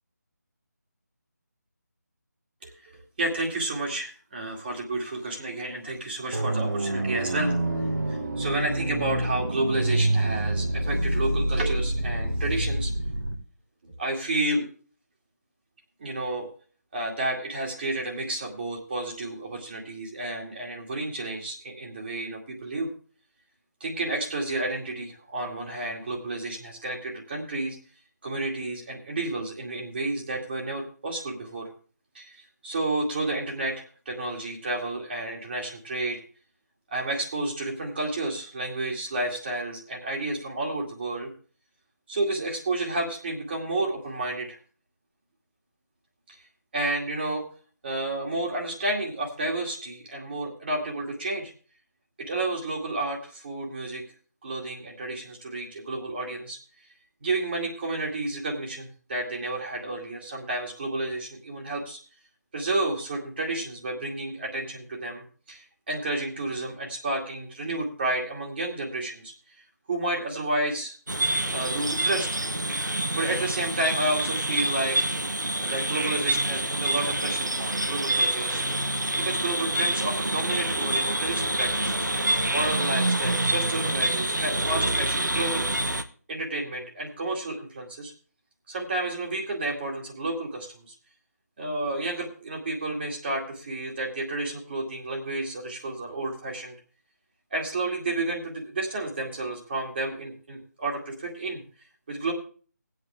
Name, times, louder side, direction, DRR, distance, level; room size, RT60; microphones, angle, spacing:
voice 1, 2.6-2.9 3.2-7.6 8.1-12.9 14.0-14.7 16.0-16.5 16.9-22.9 23.8-27.8 28.2-31.7 32.1-36.2 36.9-41.3 42.1-44.6 46.3-46.4 46.7-47.5 47.8-51.5 52.2-54.0 54.4-56.6 57.2-62.0 62.5-69.3 69.9-70.9 71.5-72.4 73.1-75.0 75.6-78.6 79.2-82.1 82.5-85.7 86.3-88.1 88.7-90.9 91.6-96.7 97.5-101.6 102.1-102.3, right 2 dB, 35° right, -1 dB, 2.2 m, -31 dB
sound 1, 6.3-13.3, right 1 dB, 70° right, 1.8 m, -27 dB
sound 2, 71.1-86.0, right 1 dB, 90° right, 1.0 m, -27 dB
18.0 x 8.3 x 3.5 m, 0.40 s
figure-of-eight pair, 155°, 10 cm